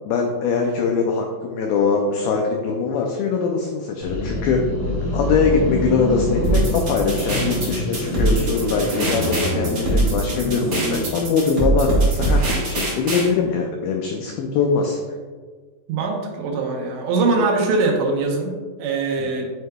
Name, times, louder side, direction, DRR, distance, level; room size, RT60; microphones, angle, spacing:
voice 1, 0.1-4.6 5.1-15.0 19.2-19.3, left 5 dB, 90° left, 2 dB, 2.1 m, -22 dB
sound 1, 4.0-11.2, left 1 dB, 65° left, 1.4 m, -26 dB
sound 2, 6.4-13.3, right 2 dB, 55° right, 1.1 m, -22 dB
voice 2, 15.9-19.5, right 3 dB, 85° right, 1 dB, 3.1 m, -22 dB
9.1 x 4.7 x 2.3 m, 1.5 s
omnidirectional pair, 4.8 m